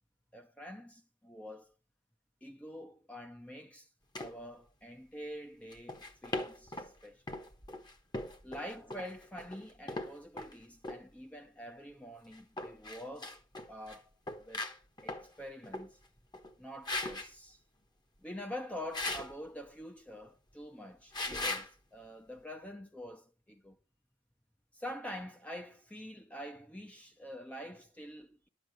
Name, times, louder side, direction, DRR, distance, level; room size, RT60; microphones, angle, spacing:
voice 1, 0.3-1.7 2.4-3.9 4.2-7.2 8.4-13.4 13.7-14.1 14.4-14.6 15.0-16.0 16.6-17.6 18.2-23.8 24.7-28.5, equal, 5° left, 0.8 m, -46 dB
sound 1, 4.2-4.3 5.7-6.9 7.3-10.5 10.8-11.0 12.3-14.0 14.3-15.3 15.6-15.9 16.3-16.5 16.9-17.3 18.9-19.3 21.1-21.7, left 2 dB, 20° left, 1.3 m, -39 dB
11.5 x 7.9 x 5.2 m
head